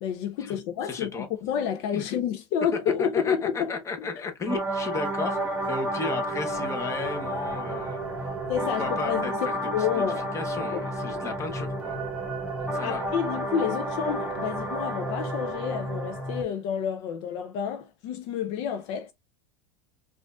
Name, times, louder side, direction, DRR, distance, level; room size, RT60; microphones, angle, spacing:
voice 1, 0.0-3.8 8.5-9.3 9.7-10.3 10.7-10.9 12.7-19.1, left 8 dB, 60° left, 0.5 m, -29 dB
voice 2, 0.8-1.3 1.9-2.0 3.1-8.3 8.8-10.0 10.3-12.0 12.7-13.0, left 4 dB, 20° left, 0.9 m, -34 dB
sound 1, 4.5-16.4, right 1 dB, 10° right, 1.2 m, -31 dB
4.9 x 2.5 x 2.3 m
supercardioid pair, 130°, 14 cm